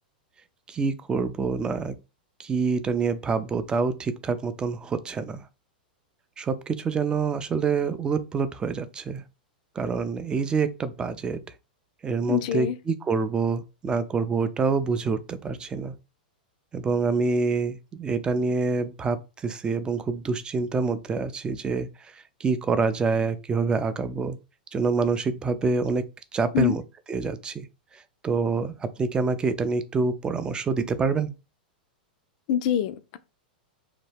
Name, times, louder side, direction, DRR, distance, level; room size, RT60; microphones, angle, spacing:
voice 1, 0.7-2.0 2.4-5.4 6.4-9.2 9.8-11.4 12.0-16.0 16.7-19.2 19.4-21.9 22.4-24.4 24.7-26.0 26.3-26.8 27.1-27.7 28.2-31.3, right 4 dB, 15° right, 0.4 m, -26 dB
voice 2, 12.3-12.8 26.5-26.8 32.5-33.2, left 9 dB, 55° left, 0.4 m, -25 dB
2.8 x 2.2 x 3.3 m
hypercardioid pair, 100°, 5 cm